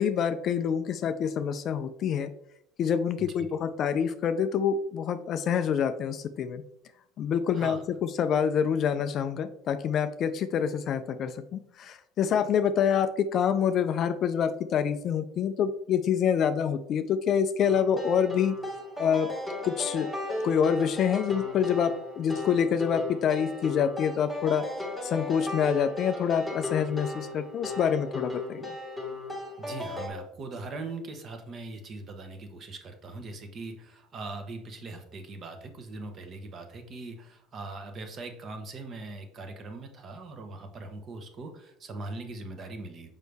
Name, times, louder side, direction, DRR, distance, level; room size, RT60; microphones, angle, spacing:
voice 1, 0.0-2.3 2.8-6.6 7.2-18.6 19.0-19.3 19.6-24.6 25.0-28.7, left 7 dB, 35° left, 10 dB, 0.4 m, -26 dB
sound 1, 17.6-30.1, left 2 dB, 5° right, 1.4 m, -36 dB
voice 2, 29.6-43.1, right 3 dB, 30° right, 6 dB, 0.9 m, -41 dB
6.3 x 5.3 x 3.4 m, 0.75 s
cardioid pair, 165°, 0 cm